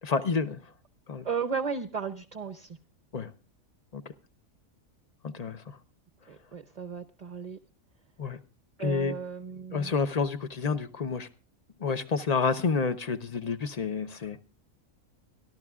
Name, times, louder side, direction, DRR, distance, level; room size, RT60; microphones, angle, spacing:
voice 1, 0.0-0.7 1.1-1.3 3.1-3.3 3.9-4.1 5.2-5.8 8.2-8.4 8.8-9.1 9.7-11.3 11.8-14.4, left 5 dB, 40° left, 0.7 m, -29 dB
voice 2, 1.2-2.8 6.3-7.6 8.8-9.9, right 6 dB, 35° right, 0.7 m, -34 dB
26.0 x 12.0 x 2.4 m
omnidirectional pair, 1.4 m